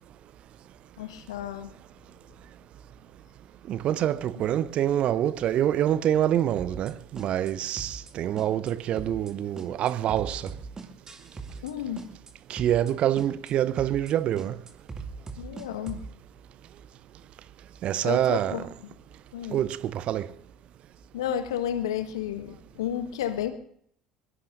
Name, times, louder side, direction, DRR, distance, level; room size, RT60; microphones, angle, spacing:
voice 1, 1.0-1.7 11.6-12.0 15.4-16.0 18.0-18.9 19.3-19.6 21.1-23.5, left 10 dB, 70° left, 1.5 m, -32 dB
voice 2, 3.7-10.4 12.5-14.5 17.8-18.6 19.5-19.8 20.1-20.3, right 11 dB, 45° right, 0.7 m, -26 dB
sound 1, 6.6-6.9 7.2-7.5 7.8-8.1 8.4-8.7 9.0-9.3 9.6-11.7 12.0-12.3 12.6-12.9 13.2-13.5 13.8-14.1 14.4-16.1, right 4 dB, 25° right, 2.4 m, -39 dB
23.0 x 22.5 x 2.6 m
figure-of-eight pair, 65°, 3 cm